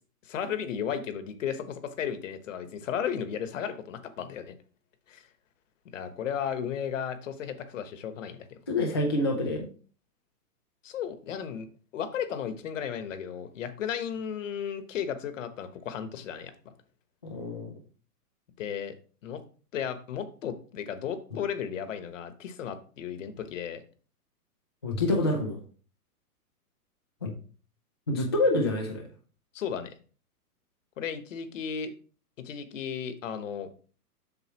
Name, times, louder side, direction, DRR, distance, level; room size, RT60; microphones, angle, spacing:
voice 1, 0.2-4.5 5.1-5.3 5.9-8.6 10.8-11.7 11.9-16.5 18.6-18.9 19.2-19.4 19.7-23.8 29.5-29.9 31.0-31.9 32.4-33.7, left 8 dB, 55° left, 10 dB, 1.2 m, -34 dB
voice 2, 8.7-9.7 17.2-17.7 24.8-25.6 27.2-27.3 28.1-29.1, left 2 dB, 20° left, -1 dB, 0.4 m, -27 dB
7.9 x 6.6 x 3.0 m, 0.39 s
hypercardioid pair, 165°, 46 cm